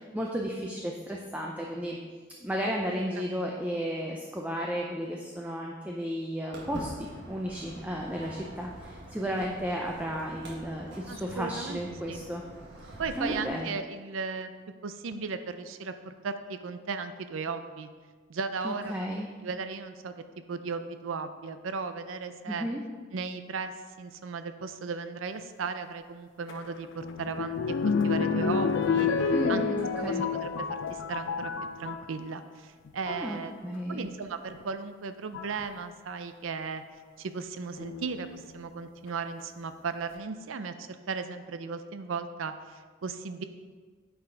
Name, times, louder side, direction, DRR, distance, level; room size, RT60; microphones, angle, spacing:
voice 1, 0.1-2.0 2.4-12.4 13.1-13.7 18.6-19.3 22.5-22.8 29.3-30.2 33.1-34.1, equal, 10° right, -1 dB, 0.5 m, -33 dB
Walk footsteps, 6.5-13.4, right 1 dB, 60° right, 1.6 m, -44 dB
voice 2, 11.1-12.2 13.0-14.5 14.8-17.9 18.3-18.9 19.4-20.2 20.5-22.7 23.1-27.6 27.8-29.1 29.5-29.6 30.1-31.5 31.8-36.8 37.2-43.4, right 5 dB, 80° right, 10 dB, 0.5 m, -36 dB
sound 1, 26.5-32.1 32.9-33.3 34.5-34.6 35.3-35.7 37.8-38.4 39.1-39.2 39.4-39.5, left 5 dB, 65° left, 0.4 m, -29 dB
9.0 x 4.8 x 3.8 m, 1.5 s
head